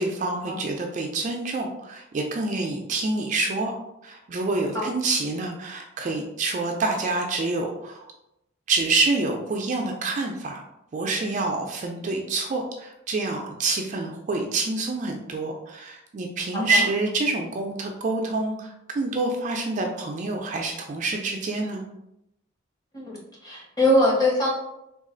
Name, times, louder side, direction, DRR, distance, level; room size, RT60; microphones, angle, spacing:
voice 1, 0.0-3.8 4.0-8.1 8.7-10.6 10.9-21.8, right 3 dB, 40° right, 2 dB, 0.3 m, -27 dB
voice 2, 16.5-16.9 22.9-23.2 23.4-24.5, left 1 dB, 20° left, -4 dB, 1.0 m, -22 dB
3.1 x 2.3 x 3.7 m, 0.85 s
head